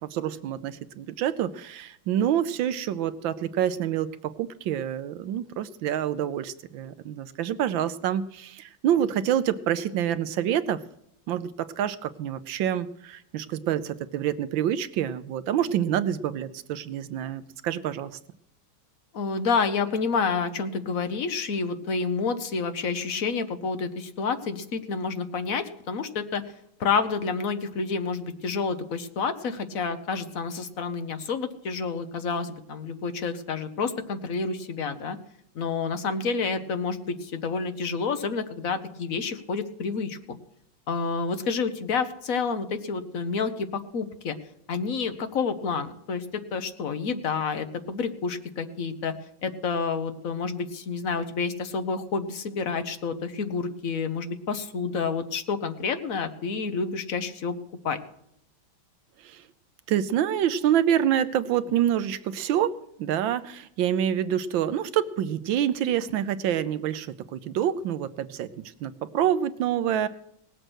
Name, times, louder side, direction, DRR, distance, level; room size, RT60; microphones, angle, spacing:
voice 1, 0.0-10.8 11.3-18.1 59.2-59.4 59.9-70.1, right 10 dB, 75° right, 13 dB, 1.5 m, -27 dB
voice 2, 19.1-26.4 26.8-35.2 35.5-40.4 40.9-44.3 44.7-49.1 49.4-57.6 57.8-58.0, left 5 dB, 50° left, 9 dB, 1.3 m, -29 dB
18.5 x 7.8 x 6.2 m, 0.76 s
omnidirectional pair, 2.2 m